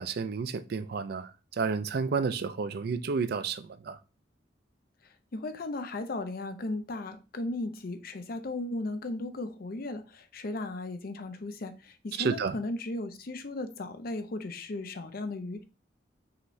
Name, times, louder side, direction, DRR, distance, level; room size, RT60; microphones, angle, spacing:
voice 1, 0.0-4.0 12.2-12.6, right 5 dB, 60° right, 0.4 m, -31 dB
voice 2, 5.0-15.6, left 2 dB, 55° left, 0.6 m, -36 dB
5.7 x 3.1 x 2.6 m
head